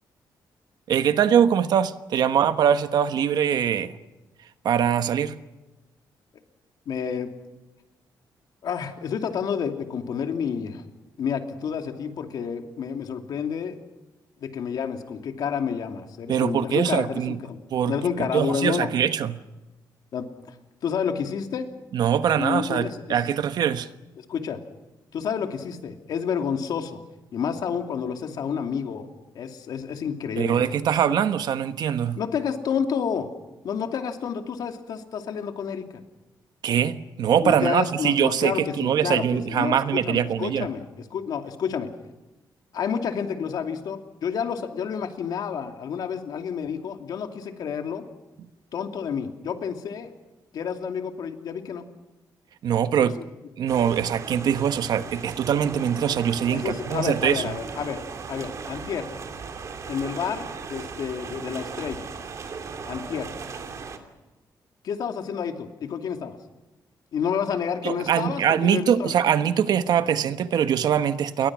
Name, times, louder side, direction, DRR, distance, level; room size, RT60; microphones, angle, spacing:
voice 1, 0.9-4.0 4.6-5.4 16.3-17.4 17.7-19.4 21.9-23.9 30.4-32.2 36.6-40.7 48.4-48.5 52.6-53.2 53.6-57.5 67.8-71.5, right 8 dB, 65° right, 1.2 m, -23 dB
voice 2, 6.9-7.3 8.6-10.8 11.2-13.7 14.4-17.6 17.9-18.9 20.1-20.5 20.8-21.7 22.4-23.2 24.3-24.6 25.1-27.0 27.3-29.1 29.3-30.6 32.2-33.3 33.6-35.9 37.4-40.8 41.1-41.9 42.7-48.0 48.7-50.1 50.5-51.8 56.5-58.0 58.3-59.1 59.9-62.0 62.9-63.3 64.8-66.4 67.1-69.1, left 7 dB, 65° left, 2.7 m, -29 dB
sound 1, 53.7-64.0, right 5 dB, 45° right, 2.7 m, -37 dB
29.5 x 22.5 x 6.2 m
wide cardioid pair, 160°, 7 cm